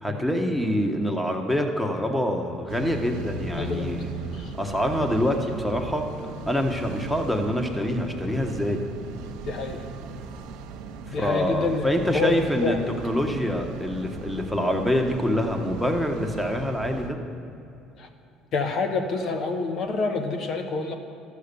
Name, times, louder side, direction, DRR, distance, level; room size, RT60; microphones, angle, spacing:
voice 1, 0.0-4.1 4.6-6.1 6.5-8.8 11.2-12.8 13.0-17.2, equal, 5° left, 4 dB, 1.2 m, -25 dB
sound 1, 2.7-17.1, right 4 dB, 80° right, 0.9 m, -38 dB
voice 2, 3.5-4.5 9.5-9.8 11.1-12.9 18.0-18.1 18.5-21.0, left 3 dB, 60° left, 5 dB, 1.0 m, -28 dB
12.5 x 6.5 x 6.9 m, 2.7 s
supercardioid pair, 90°, 0 cm